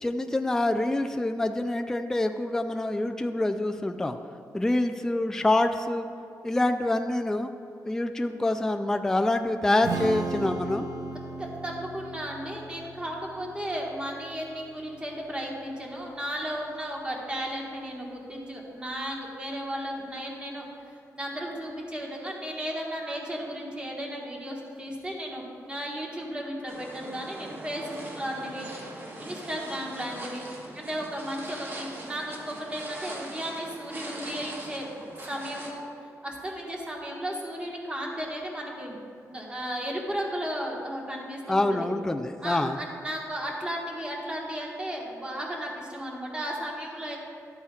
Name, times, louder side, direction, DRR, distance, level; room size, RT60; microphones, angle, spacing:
voice 1, 0.0-4.2 4.5-6.1 6.4-7.5 7.9-10.9 41.5-42.8, left 2 dB, 10° left, 6 dB, 0.3 m, -26 dB
Strum, 9.8-16.1, right 3 dB, 70° right, 0.7 m, -38 dB
voice 2, 11.4-28.7 29.2-30.5 30.7-34.9 35.3-35.8 36.2-39.0 39.3-41.9 42.4-47.2, equal, 15° right, -2 dB, 1.4 m, -34 dB
sound 1, 26.7-35.7, right 1 dB, 35° right, 1.3 m, -41 dB
12.5 x 8.6 x 2.4 m, 2.3 s
wide cardioid pair, 125°, 6 cm